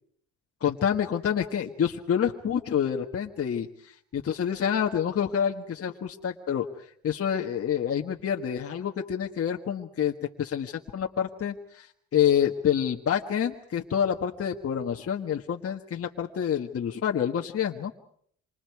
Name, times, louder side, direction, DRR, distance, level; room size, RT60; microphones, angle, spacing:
voice 1, 0.6-6.7 7.0-17.9, left 8 dB, 50° left, 2 dB, 1.6 m, -28 dB
27.5 x 26.0 x 4.8 m, 0.62 s
cardioid pair, 90°, 30 cm